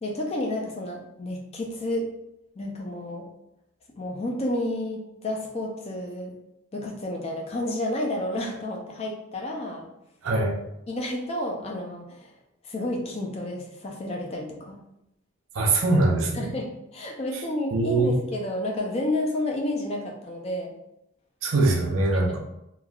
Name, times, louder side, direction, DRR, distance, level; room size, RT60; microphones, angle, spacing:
voice 1, 0.0-2.1 2.6-3.3 4.0-6.3 6.7-9.8 10.9-12.3 12.6-14.8 16.3-20.7, left 1 dB, 30° left, 1 dB, 0.4 m, -30 dB
voice 2, 10.2-10.6 15.5-16.5 17.3-17.4 17.7-18.2 21.4-22.4, right 2 dB, 70° right, 1 dB, 0.5 m, -22 dB
3.1 x 2.3 x 2.4 m, 0.84 s
head